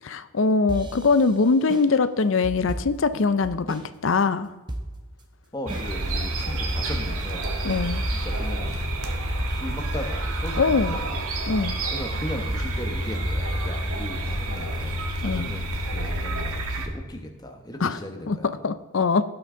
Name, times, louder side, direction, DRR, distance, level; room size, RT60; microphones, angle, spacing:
voice 1, 0.0-4.5 7.6-8.0 10.6-11.0 11.5-11.8 15.2-15.5 17.8-18.0 18.3-18.4 18.6-19.2, left 4 dB, 60° left, 13 dB, 0.5 m, -22 dB
sound 1, 0.7-3.9 4.2-4.3 4.7-5.2 5.7-6.2 6.7-8.5, right 1 dB, 20° right, 0.9 m, -36 dB
voice 2, 5.5-7.5 8.1-8.8 9.5-11.3 11.9-18.5, left 1 dB, 15° left, 4 dB, 1.1 m, -37 dB
sound 2, 5.7-16.9, right 1 dB, 75° right, 1.5 m, -28 dB
17.0 x 5.9 x 3.8 m, 1.3 s
head